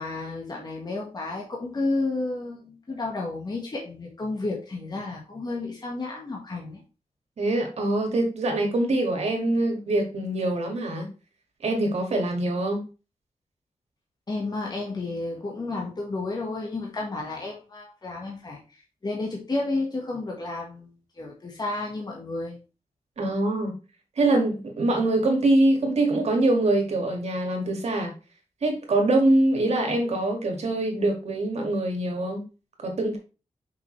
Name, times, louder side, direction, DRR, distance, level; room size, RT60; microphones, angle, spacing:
voice 1, 0.0-6.8 14.3-18.6 19.0-22.6, left 2 dB, 40° left, -1 dB, 1.5 m, -31 dB
voice 2, 7.4-11.1 11.6-12.8 23.2-23.8 24.2-28.1 28.6-32.4 32.8-33.2, right 2 dB, 75° right, 3 dB, 2.1 m, -24 dB
6.1 x 5.7 x 3.2 m, 0.32 s
wide cardioid pair, 115°, 11 cm